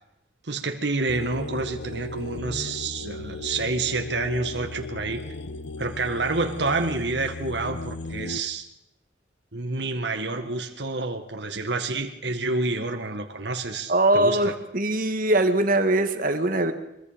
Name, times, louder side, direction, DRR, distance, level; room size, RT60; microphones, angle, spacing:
voice 1, 0.5-5.2 5.8-8.7 9.5-14.5, right 3 dB, 70° right, 4 dB, 1.7 m, -28 dB
sound 1, 1.1-8.4, left 2 dB, 70° left, 1.1 m, -36 dB
voice 2, 13.9-16.7, right 1 dB, 50° right, 7 dB, 1.8 m, -22 dB
24.0 x 21.5 x 5.2 m, 0.86 s
head